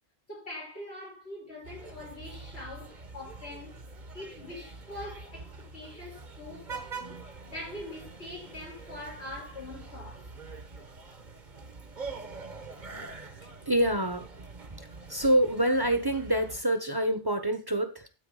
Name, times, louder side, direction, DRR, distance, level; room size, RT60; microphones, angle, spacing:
voice 1, 0.3-3.8 4.1-10.3, left 1 dB, 90° left, 5.2 m, -43 dB
sound 1, 1.6-16.6, right 4 dB, 50° right, 1.3 m, -45 dB
voice 2, 13.3-14.3 14.7-14.8 15.1-18.1, right 1 dB, 25° right, 1.0 m, -26 dB
12.5 x 4.7 x 4.8 m
omnidirectional pair, 1.0 m